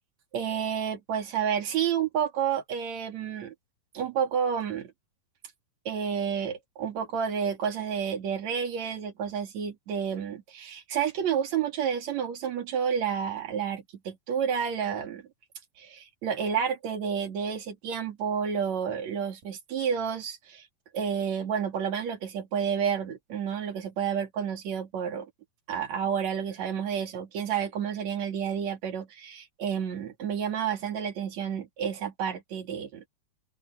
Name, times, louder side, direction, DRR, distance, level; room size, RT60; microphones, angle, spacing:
voice 1, 0.3-3.5 3.9-4.9 5.9-15.2 15.8-20.7 20.9-25.3 25.7-33.0, right 7 dB, 55° right, 3.6 m, -30 dB
open air
omnidirectional pair, 4.0 m